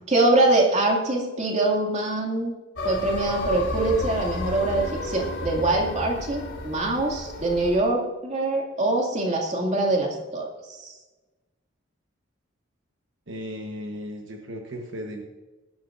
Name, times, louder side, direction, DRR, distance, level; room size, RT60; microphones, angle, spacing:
voice 1, 0.1-2.5 2.8-10.9, right 2 dB, 35° right, -1 dB, 2.4 m, -24 dB
sound 1, 2.8-7.8, left 1 dB, 60° left, 3.1 m, -31 dB
voice 2, 13.3-15.2, equal, 65° right, 2 dB, 1.3 m, -35 dB
18.0 x 12.0 x 2.7 m, 1.2 s
head